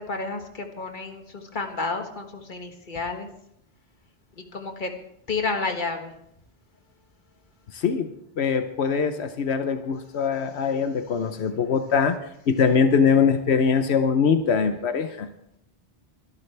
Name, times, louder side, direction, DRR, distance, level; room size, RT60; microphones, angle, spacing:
voice 1, 0.0-3.3 4.5-4.9 5.3-6.1, left 3 dB, 50° left, 4 dB, 1.7 m, -30 dB
voice 2, 7.7-12.2 12.5-15.3, left 6 dB, 85° left, 8 dB, 1.1 m, -22 dB
23.5 x 12.5 x 3.4 m, 0.74 s
omnidirectional pair, 1.1 m